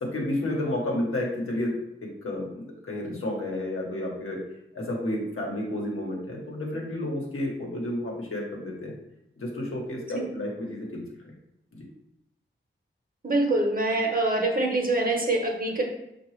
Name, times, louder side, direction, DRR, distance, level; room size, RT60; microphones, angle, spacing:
voice 1, 0.0-4.4 4.7-8.9 9.4-11.0 11.7-11.9, left 1 dB, 85° left, -2 dB, 1.0 m, -31 dB
voice 2, 13.2-15.8, right 2 dB, 40° right, 1 dB, 0.9 m, -25 dB
4.6 x 2.4 x 3.1 m, 0.84 s
wide cardioid pair, 55°, 21 cm